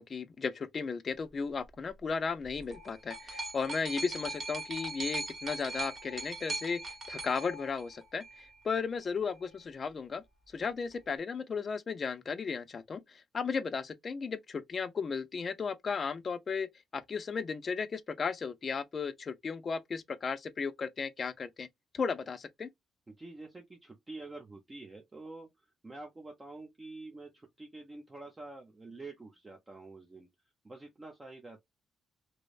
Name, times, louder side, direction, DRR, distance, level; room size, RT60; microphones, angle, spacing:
voice 1, 0.0-10.2 10.5-21.7 21.9-22.7, left 5 dB, 40° left, 0.5 m, -35 dB
sound 1, 2.4-8.4 9.3-9.4, right 2 dB, 50° right, 1.1 m, -40 dB
voice 2, 23.1-30.3 30.6-31.6, right 2 dB, 25° right, 0.7 m, -47 dB
3.0 x 2.0 x 2.4 m
cardioid pair, 90°, 0 cm